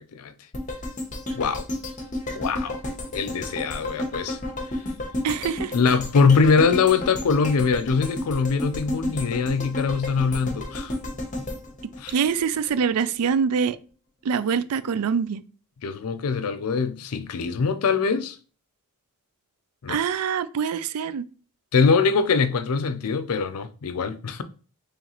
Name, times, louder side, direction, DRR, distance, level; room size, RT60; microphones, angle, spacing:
sound 1, 0.5-12.7 13.1-13.2, left 1 dB, 35° left, 0.8 m, -32 dB
voice 1, 1.3-1.7 2.3-2.8 3.1-4.4 5.7-11.0 12.0-12.1 15.8-18.4 19.8-20.0 21.7-24.4, left 5 dB, 80° left, 0.5 m, -23 dB
voice 2, 5.2-5.7 12.1-13.8 14.2-15.4 19.9-21.3, right 6 dB, 85° right, 0.4 m, -24 dB
3.9 x 3.1 x 3.0 m
head